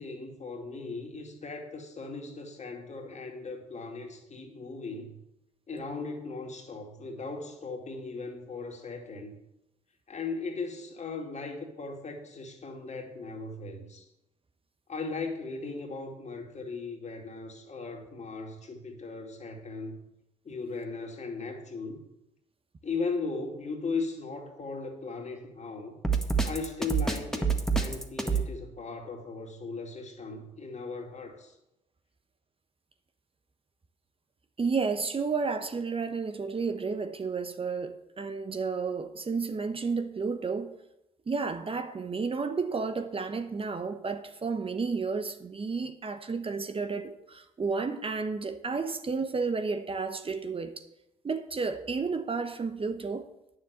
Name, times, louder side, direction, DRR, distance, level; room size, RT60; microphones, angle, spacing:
voice 1, 0.0-5.2 5.7-9.4 10.1-14.1 14.9-20.0 20.4-22.0 22.8-26.0 26.4-31.6, left 3 dB, 40° left, 2.6 m, -38 dB
Drum kit, 26.0-28.5, right 5 dB, 5° left, 1.8 m, -26 dB
voice 2, 34.6-40.7 41.3-50.8 51.2-53.3, right 4 dB, 30° right, 1.1 m, -32 dB
9.4 x 7.1 x 8.1 m
hypercardioid pair, 55°, 18 cm